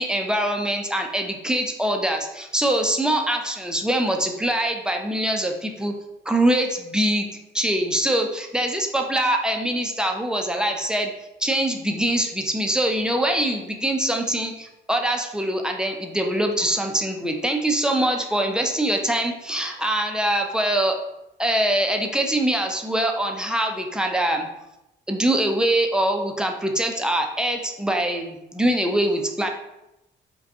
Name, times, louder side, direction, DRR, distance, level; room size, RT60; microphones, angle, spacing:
voice 1, 0.0-5.9 6.3-7.3 7.5-11.1 11.4-21.0 21.4-24.5 25.1-29.5, right 1 dB, 5° right, 3 dB, 0.5 m, -23 dB
4.8 x 2.3 x 2.8 m, 0.89 s
cardioid pair, 90°, 20 cm